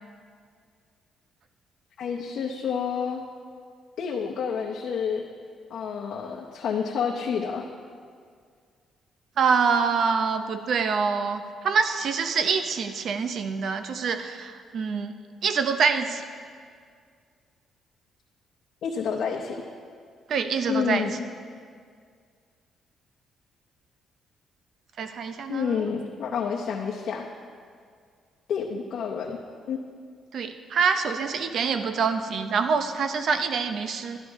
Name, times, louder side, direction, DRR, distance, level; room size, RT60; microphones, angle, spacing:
voice 1, 2.0-3.2 4.0-5.2 5.7-7.7 18.8-19.6 20.7-21.2 25.5-27.3 28.5-29.4 29.7-29.8, left 6 dB, 65° left, -1 dB, 0.8 m, -29 dB
voice 2, 9.4-15.1 15.4-16.2 20.3-21.1 25.0-25.8 30.3-34.2, right 5 dB, 55° right, 8 dB, 0.6 m, -25 dB
12.5 x 11.5 x 3.6 m, 2.1 s
cardioid pair, 130°, 0 cm